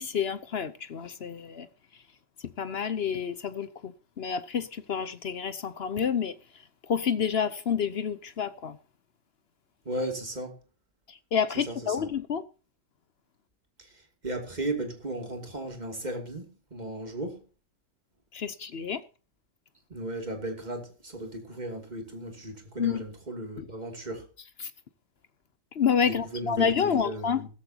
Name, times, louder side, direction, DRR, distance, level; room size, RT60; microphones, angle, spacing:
voice 1, 0.0-1.7 2.6-6.3 6.9-8.8 11.1-12.4 18.3-19.0 22.8-23.0 24.6-24.7 25.7-27.5, left 7 dB, 60° left, 0.6 m, -29 dB
voice 2, 9.8-10.6 11.5-12.1 13.8-17.4 19.9-24.3 26.3-27.4, right 1 dB, 20° right, 2.8 m, -36 dB
16.0 x 14.0 x 2.9 m
omnidirectional pair, 2.0 m